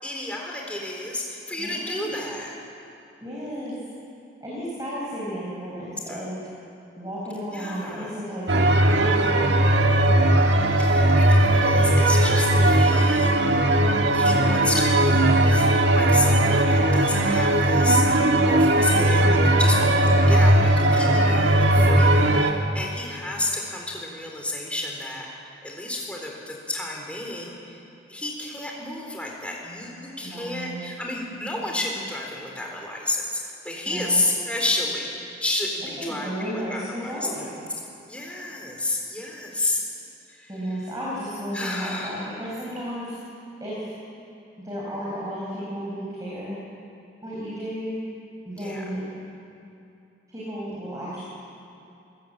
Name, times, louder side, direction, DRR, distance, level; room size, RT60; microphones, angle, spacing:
voice 1, 0.0-2.5 6.1-6.3 7.5-8.2 10.8-13.4 14.1-15.7 15.9-19.2 19.5-19.9 20.3-25.3 25.6-27.8 28.1-35.1 35.4-37.3 38.1-39.8 40.3-40.9 41.5-42.3 48.5-48.8, left 2 dB, 5° left, -1 dB, 3.8 m, -31 dB
voice 2, 1.6-2.1 3.2-3.7 4.4-6.4 7.0-9.5 18.8-20.1 30.2-30.8 33.8-34.2 36.0-37.5 40.5-43.1 43.6-43.9 44.6-46.6 47.2-47.9 48.4-49.0 50.3-51.2, equal, 20° right, -7 dB, 5.0 m, -33 dB
sound 1, 8.5-22.5, right 1 dB, 70° right, 1.7 m, -18 dB
27.0 x 16.0 x 8.9 m, 2.7 s
head